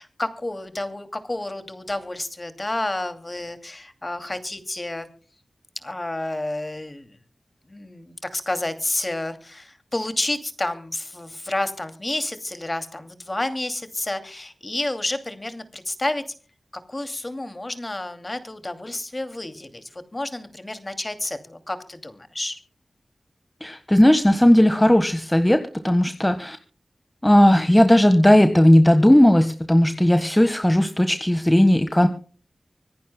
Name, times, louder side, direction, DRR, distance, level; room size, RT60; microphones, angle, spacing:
voice 1, 0.0-5.1 5.8-7.2 7.7-16.2 16.9-22.6, left 1 dB, 30° left, 8 dB, 2.5 m, -30 dB
voice 2, 23.6-26.6 27.2-32.1, left 1 dB, 15° left, 8 dB, 1.3 m, -16 dB
25.5 x 15.0 x 2.2 m, 0.41 s
cardioid pair, 50°, 0 cm